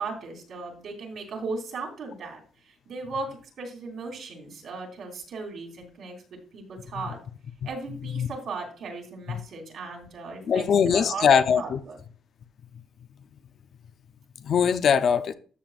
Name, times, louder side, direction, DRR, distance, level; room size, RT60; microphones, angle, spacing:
voice 1, 0.0-7.2 7.6-11.3 11.5-12.0, right 4 dB, 55° right, 3.2 m, -37 dB
voice 2, 10.5-11.8 14.4-15.3, left 7 dB, 45° left, 0.6 m, -22 dB
13.0 x 7.2 x 2.5 m
cardioid pair, 155°, 0 cm